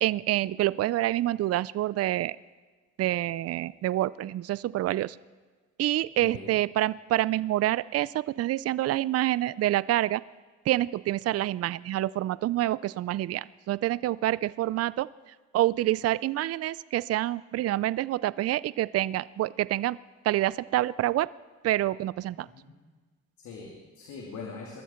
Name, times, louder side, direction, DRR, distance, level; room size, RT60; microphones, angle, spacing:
voice 1, 0.0-2.4 3.0-5.2 5.8-10.2 10.7-15.1 15.5-20.0 20.2-21.3 21.6-22.5, right 14 dB, 55° right, 20 dB, 0.4 m, -27 dB
voice 2, 6.2-6.5 22.4-22.7 23.4-24.8, left 4 dB, 75° left, -1 dB, 2.8 m, -42 dB
22.0 x 13.0 x 4.4 m, 1.4 s
cardioid pair, 90°, 30 cm